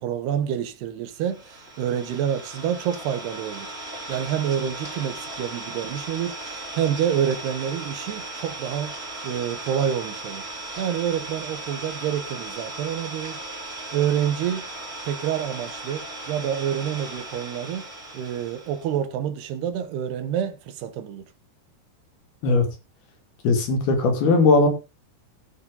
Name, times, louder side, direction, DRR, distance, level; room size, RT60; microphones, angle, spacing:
voice 1, 0.0-3.7 4.1-9.0 9.2-10.4 10.8-13.4 13.9-14.6 15.0-17.8 18.1-21.2, right 9 dB, 85° right, 3.4 m, -27 dB
Idling, 1.2-18.9, right 2 dB, 15° right, 5.5 m, -37 dB
voice 2, 23.4-24.7, left 3 dB, 70° left, 4.5 m, -18 dB
15.5 x 7.4 x 3.9 m
omnidirectional pair, 4.6 m